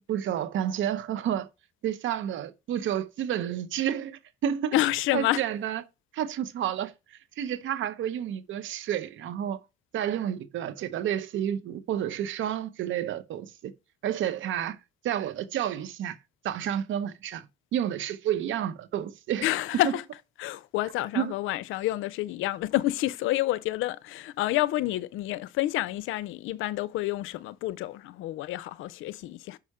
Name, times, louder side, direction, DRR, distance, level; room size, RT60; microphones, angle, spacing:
voice 1, 0.0-1.5 1.8-4.7 5.1-5.8 6.1-9.6 9.9-13.7 14.0-14.8 15.0-16.2 16.4-17.4 17.7-19.5 19.8-19.9 21.1-21.3, right 10 dB, 75° right, 0.9 m, -30 dB
voice 2, 4.7-5.4 19.4-20.0 20.4-29.6, left 15 dB, 90° left, 0.5 m, -29 dB
5.9 x 5.6 x 4.8 m
cardioid pair, 90°, 20 cm